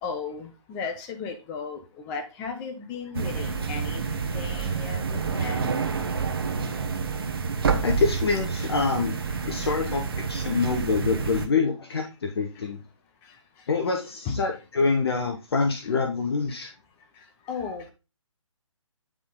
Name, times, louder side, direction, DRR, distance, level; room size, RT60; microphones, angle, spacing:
voice 1, 0.0-4.0 4.3-5.8 9.3-9.4 9.8-10.0 11.2-11.3 12.0-12.1 14.2-14.4 17.5-17.9, left 5 dB, 15° left, 5 dB, 0.8 m, -35 dB
sound 1, 3.1-11.5, right 5 dB, 45° right, 1.0 m, -28 dB
voice 2, 7.8-9.1 9.5-10.0 10.3-12.8 13.7-16.7, left 4 dB, 50° left, 3 dB, 0.9 m, -26 dB
9.7 x 3.8 x 3.8 m, 0.30 s
figure-of-eight pair, 140°, 17 cm